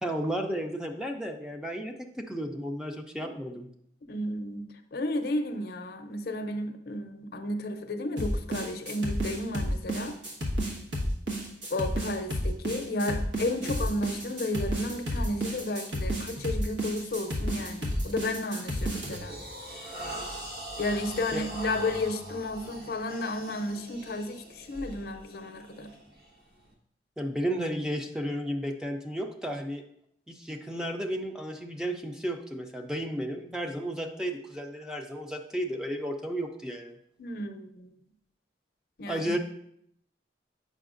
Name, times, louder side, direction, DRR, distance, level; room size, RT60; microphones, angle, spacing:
voice 1, 0.0-3.7 21.3-21.4 27.2-29.8 30.3-37.0 39.1-39.4, equal, 5° right, 3 dB, 0.4 m, -33 dB
voice 2, 4.1-10.2 11.7-19.4 20.8-25.9 37.2-37.9 39.0-39.3, left 1 dB, 60° left, 6 dB, 0.5 m, -33 dB
sound 1, 8.2-19.2, equal, 90° right, 1.4 m, -31 dB
sound 2, 17.1-17.3 17.8-18.1 18.6-26.7, right 1 dB, 55° right, 1.3 m, -42 dB
7.9 x 5.6 x 2.5 m, 0.71 s
head